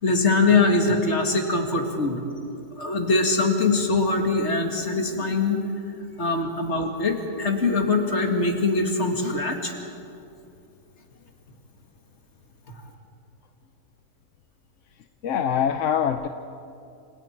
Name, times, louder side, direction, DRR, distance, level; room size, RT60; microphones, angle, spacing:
voice 1, 0.0-2.2 2.8-5.6 6.2-9.7, left 3 dB, 45° left, 3 dB, 2.3 m, -22 dB
voice 2, 15.0-16.3, left 8 dB, 60° left, 8 dB, 0.9 m, -24 dB
28.0 x 27.0 x 4.5 m, 2.7 s
omnidirectional pair, 1.7 m